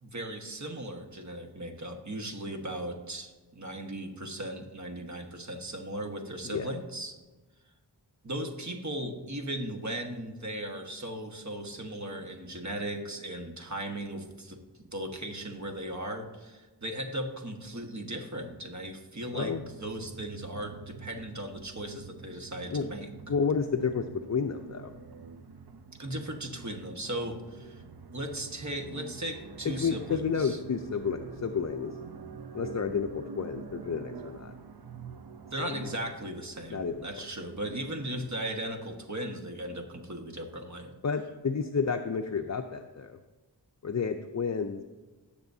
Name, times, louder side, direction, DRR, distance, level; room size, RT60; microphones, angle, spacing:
voice 1, 0.0-7.2 8.2-19.5 19.8-23.1 26.0-27.8 28.1-30.6 35.5-40.9, right 1 dB, 40° right, 4 dB, 1.4 m, -37 dB
voice 2, 19.3-19.6 22.7-22.9 23.3-24.9 29.6-32.0 32.5-34.5 35.6-35.7 36.7-37.1 41.0-43.2 43.8-44.8, left 5 dB, 40° left, 6 dB, 0.5 m, -31 dB
sound 1, 19.3-38.4, right 5 dB, 60° right, 0.7 m, -46 dB
17.5 x 6.9 x 2.7 m, 1.2 s
wide cardioid pair, 45°, 43 cm